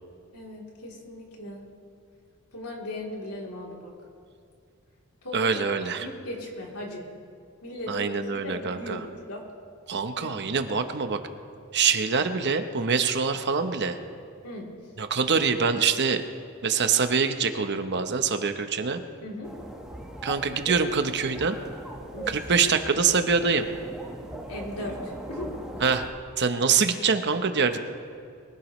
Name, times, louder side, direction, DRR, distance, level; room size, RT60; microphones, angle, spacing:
voice 1, 0.3-1.6 2.5-3.9 5.2-5.6 6.0-7.0 7.6-8.1 8.4-9.4 10.2-10.4 14.4-14.7 19.2-19.5 22.1-22.3 24.5-25.5, left 1 dB, 85° left, -2 dB, 3.2 m, -37 dB
voice 2, 5.3-6.1 7.9-9.1 9.9-11.2 11.7-14.0 15.0-16.2 16.6-19.0 20.2-21.6 22.3-23.7 25.8-26.1 26.4-27.8, right 5 dB, 50° right, 8 dB, 0.9 m, -24 dB
sound 1, 19.4-26.1, right 1 dB, 5° right, 1.4 m, -40 dB
22.5 x 16.5 x 3.2 m, 2.4 s
head